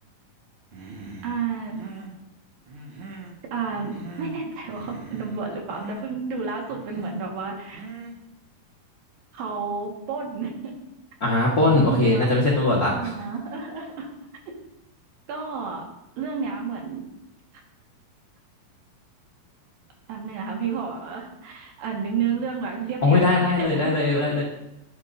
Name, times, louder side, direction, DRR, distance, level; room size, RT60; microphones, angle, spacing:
Human voice, 0.7-1.4 1.7-2.2 2.7-3.4 3.7-4.4 4.7-5.4 5.7-6.1 6.7-7.2 7.7-8.2, right 3 dB, 50° right, 1.7 m, -40 dB
voice 1, 1.2-1.8 3.5-7.8 9.3-10.7 11.6-12.3 12.9-14.1 15.3-15.8 16.2-17.1 20.1-23.9, right 5 dB, 75° right, 0 dB, 3.4 m, -31 dB
voice 2, 11.2-13.1 23.0-24.4, left 2 dB, 50° left, -5 dB, 1.0 m, -20 dB
11.5 x 10.0 x 2.7 m, 0.89 s
omnidirectional pair, 4.1 m